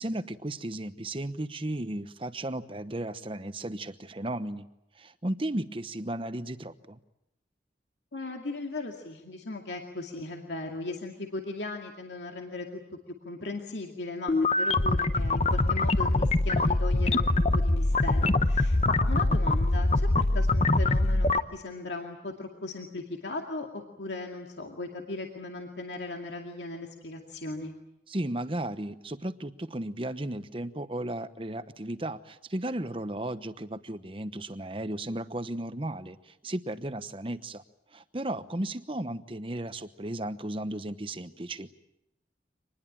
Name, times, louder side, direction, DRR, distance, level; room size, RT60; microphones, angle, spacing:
voice 1, 0.0-4.7 5.0-7.0 28.1-37.6 37.9-41.7, right 1 dB, 30° right, 12 dB, 1.0 m, -35 dB
voice 2, 8.1-12.8 13.3-27.7, left 2 dB, 85° left, 2 dB, 2.3 m, -38 dB
sound 1, 14.3-21.4, left 2 dB, 35° left, 0.8 m, -24 dB
25.5 x 20.5 x 8.7 m, 0.87 s
head